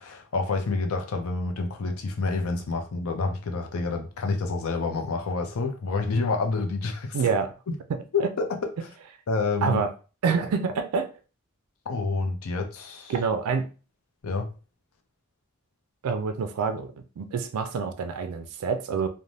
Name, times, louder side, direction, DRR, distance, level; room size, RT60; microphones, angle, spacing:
voice 1, 0.0-7.3 7.7-7.8 8.1-8.7 9.3-9.8 11.9-13.1 14.2-14.5, left 3 dB, 75° left, 0.5 m, -28 dB
voice 2, 7.1-7.5 7.9-8.0 9.6-9.9 10.2-11.1 13.1-13.7 16.0-19.1, right 5 dB, 85° right, 0.4 m, -27 dB
3.2 x 2.1 x 2.6 m
head